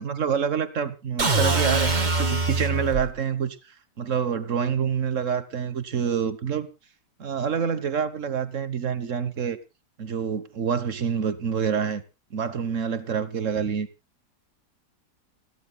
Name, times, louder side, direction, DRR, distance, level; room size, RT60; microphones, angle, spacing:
voice 1, 0.0-3.6 4.0-6.7 7.2-9.6 10.0-12.0 12.3-13.9, right 7 dB, 50° right, 1.4 m, -27 dB
sound 1, 1.2-3.1, right 3 dB, 25° right, 1.7 m, -23 dB
28.5 x 11.0 x 2.3 m
omnidirectional pair, 1.9 m